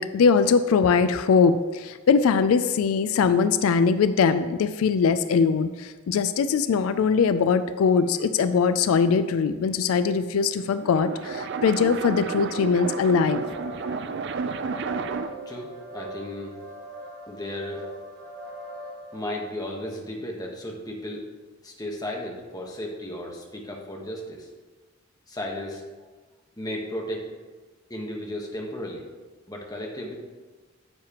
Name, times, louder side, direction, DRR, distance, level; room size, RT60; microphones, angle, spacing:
voice 1, 0.0-13.4, left 5 dB, 80° left, 12 dB, 0.3 m, -21 dB
sound 1, 10.6-15.5, right 5 dB, 55° right, 0.4 m, -31 dB
sound 2, 12.6-19.2, right 1 dB, 80° right, 2.5 m, -41 dB
voice 2, 15.5-16.6 17.3-17.9 19.1-21.3 21.6-24.5 25.3-25.8 26.6-27.3 27.9-29.1 29.5-30.2, left 1 dB, 20° left, -1 dB, 1.1 m, -34 dB
9.6 x 7.4 x 2.9 m, 1.3 s
head